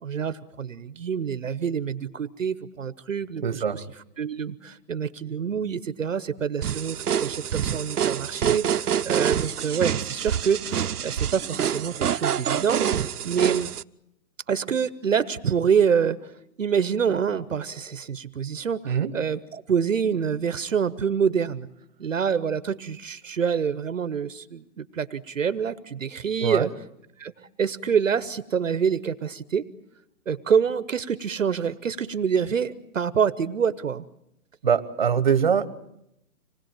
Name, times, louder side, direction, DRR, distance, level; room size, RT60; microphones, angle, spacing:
voice 1, 0.0-3.8 4.2-13.7 14.5-16.3 16.6-21.7 22.0-26.7 27.2-27.3 27.6-29.7 30.3-34.0, right 7 dB, 55° right, 15 dB, 1.0 m, -26 dB
voice 2, 3.4-3.8 18.8-19.1 26.4-26.7 34.6-35.7, right 7 dB, 30° right, 11 dB, 1.2 m, -23 dB
sound 1, 6.6-13.8, right 9 dB, 80° right, 0.9 m, -26 dB
26.5 x 20.0 x 9.0 m, 0.80 s
hypercardioid pair, 180°, 45 cm